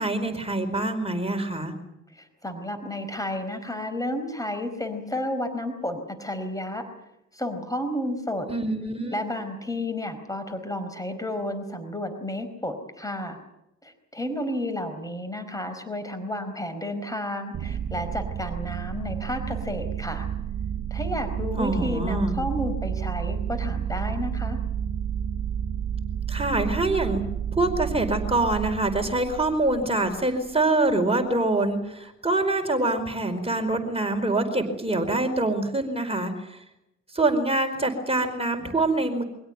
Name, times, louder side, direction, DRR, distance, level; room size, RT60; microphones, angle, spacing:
voice 1, 0.0-1.7 8.5-9.1 21.5-22.3 26.3-27.3 27.5-36.6 37.1-39.2, right 2 dB, 20° right, 5 dB, 4.8 m, -25 dB
voice 2, 2.1-6.8 7.3-8.5 9.1-13.4 13.8-20.3 20.9-24.6, left 1 dB, 10° left, 8 dB, 4.7 m, -31 dB
sound 1, 17.5-30.4, right 8 dB, 70° right, 1.2 m, -31 dB
25.0 x 17.0 x 9.6 m, 0.87 s
cardioid pair, 75°, 29 cm